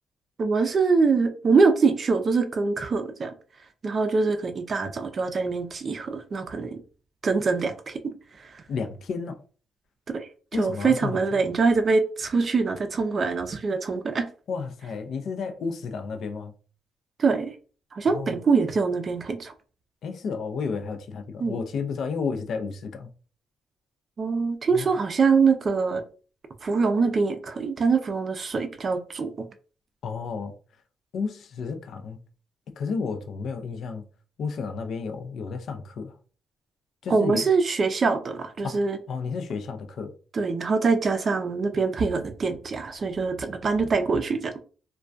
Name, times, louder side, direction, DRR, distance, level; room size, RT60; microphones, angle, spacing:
voice 1, 0.4-3.3 3.8-6.8 7.2-8.0 10.1-14.3 17.2-17.5 17.9-19.5 21.4-21.6 24.2-26.0 26.6-29.5 37.1-39.0 40.3-44.6, right 4 dB, 45° right, 0.4 m, -24 dB
voice 2, 8.7-9.4 10.5-11.2 14.5-16.5 18.1-18.4 20.0-23.1 24.7-24.9 30.0-30.5 31.1-32.2 32.8-34.0 34.4-36.1 37.0-37.4 38.6-38.8 39.1-40.1, left 5 dB, 65° left, 0.4 m, -31 dB
2.2 x 2.2 x 2.5 m
cardioid pair, 90°, 0 cm